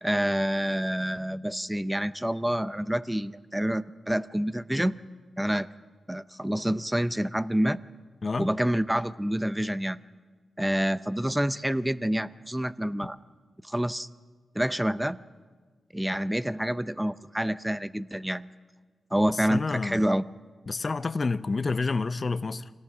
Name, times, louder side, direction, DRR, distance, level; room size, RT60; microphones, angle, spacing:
voice 1, 0.0-4.9 5.4-5.7 6.1-7.8 8.4-10.0 10.6-13.2 13.6-14.1 14.5-15.2 15.9-18.5 19.1-20.2, equal, 10° right, 0.6 m, -27 dB
voice 2, 19.3-20.1 20.7-22.7, left 4 dB, 45° left, 0.6 m, -29 dB
24.5 x 18.0 x 6.1 m
cardioid pair, 60°, 0 cm